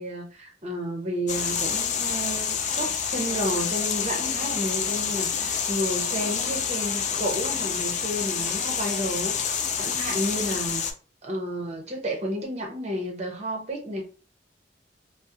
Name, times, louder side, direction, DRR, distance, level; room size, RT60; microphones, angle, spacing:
voice 1, 0.0-10.8 11.2-14.0, equal, 40° right, 1 dB, 0.7 m, -31 dB
sound 1, 1.3-10.9, left 7 dB, 45° left, 0.3 m, -28 dB
2.4 x 2.0 x 2.6 m, 0.37 s
head